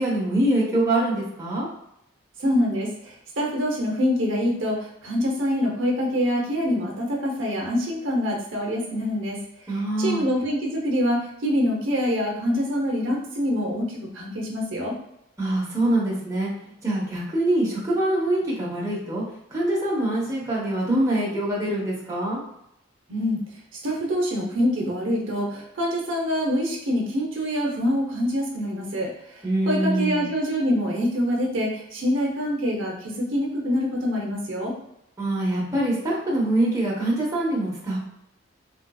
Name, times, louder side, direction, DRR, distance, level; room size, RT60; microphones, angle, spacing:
voice 1, 0.0-1.7 9.7-10.3 15.4-16.5 16.8-19.2 19.5-22.4 29.4-30.3 35.2-38.0, right 1 dB, 15° right, -6 dB, 0.9 m, -24 dB
voice 2, 2.4-9.4 10.0-15.0 23.1-23.4 23.7-34.7, equal, 75° right, -1 dB, 0.8 m, -25 dB
3.8 x 2.6 x 2.2 m, 0.80 s
head